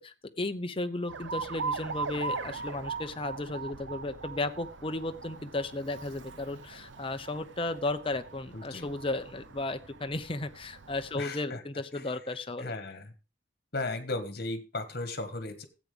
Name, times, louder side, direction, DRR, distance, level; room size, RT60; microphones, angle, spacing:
voice 1, 0.0-12.7, left 2 dB, 30° left, 9 dB, 0.7 m, -34 dB
Alarm, 1.1-11.2, right 4 dB, 75° right, 0.7 m, -40 dB
voice 2, 8.5-8.9 11.1-11.6 11.9-12.0 12.6-13.1 13.7-15.7, left 2 dB, 55° left, 10 dB, 1.5 m, -36 dB
13.5 x 8.4 x 3.4 m, 0.30 s
head